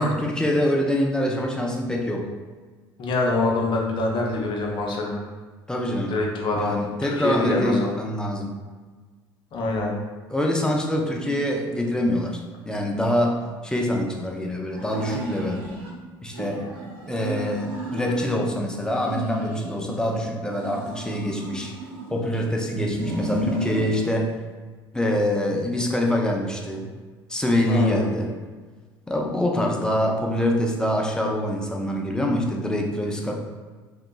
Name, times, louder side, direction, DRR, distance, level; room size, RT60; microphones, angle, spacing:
voice 1, 0.0-2.3 5.7-6.2 6.6-8.5 10.3-15.6 16.2-16.8 17.1-21.7 22.1-24.3 24.9-26.9 27.3-28.3 29.1-33.4, left 1 dB, 5° left, 0 dB, 0.5 m, -25 dB
voice 2, 3.0-5.2 6.1-7.9 9.5-9.9 27.7-28.0, left 2 dB, 40° left, -1 dB, 0.7 m, -25 dB
sound 1, 14.7-15.9 16.3-18.4 18.8-20.0 20.5-22.4 22.9-24.1, equal, 65° right, 0.8 m, -33 dB
3.4 x 2.8 x 2.3 m, 1.4 s
figure-of-eight pair, 65°, 13 cm